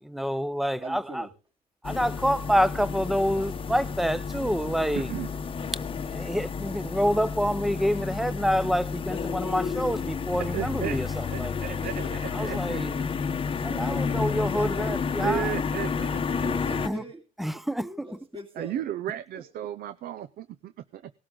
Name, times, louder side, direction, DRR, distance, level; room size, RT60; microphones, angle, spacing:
voice 1, 0.0-1.3 1.8-5.1 6.1-11.8 12.3-13.0 13.8-15.6 16.8-17.0 17.4-17.9, equal, ahead, 0.7 m, -27 dB
voice 2, 0.8-1.3 11.8-12.6 13.4-15.1 16.4-17.2 17.8-18.8 19.3-19.4, right 2 dB, 30° right, 2.5 m, -42 dB
sound 1, 1.8-16.9, left 5 dB, 30° left, 0.9 m, -31 dB
voice 3, 10.5-12.0 12.4-13.1 15.2-16.9 18.6-21.1, right 11 dB, 65° right, 0.6 m, -35 dB
18.5 x 12.5 x 3.9 m
cardioid pair, 110°, 17 cm